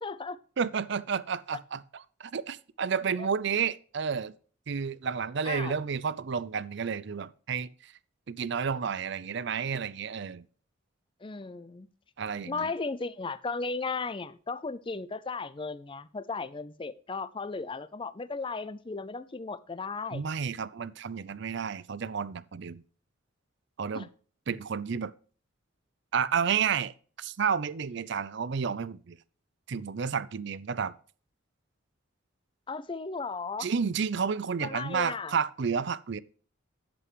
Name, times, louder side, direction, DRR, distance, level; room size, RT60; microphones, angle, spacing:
voice 1, 0.0-0.4 3.2-3.3 5.4-5.7 11.2-11.9 12.5-20.2 23.9-24.1 32.7-33.7 34.6-35.3, left 4 dB, 25° left, 0.5 m, -35 dB
voice 2, 0.6-1.8 2.2-4.3 4.7-7.9 8.3-10.5 12.2-12.7 20.1-22.8 23.8-24.1 24.5-25.1 26.1-29.2 29.7-30.9 33.6-36.2, right 6 dB, 60° right, 0.5 m, -31 dB
11.0 x 7.9 x 3.1 m
head